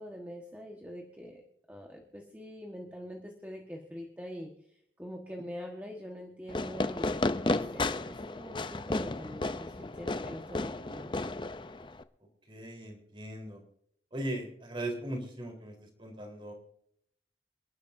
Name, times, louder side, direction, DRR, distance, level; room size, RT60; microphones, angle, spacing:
voice 1, 0.0-1.4 1.7-11.2, equal, 10° right, 0 dB, 1.5 m, -44 dB
Fireworks, 6.5-12.0, left 2 dB, 25° left, 0.6 m, -33 dB
voice 2, 12.5-13.6 14.1-16.5, right 1 dB, 30° right, 2 dB, 3.9 m, -38 dB
27.5 x 11.5 x 2.7 m, 0.70 s
head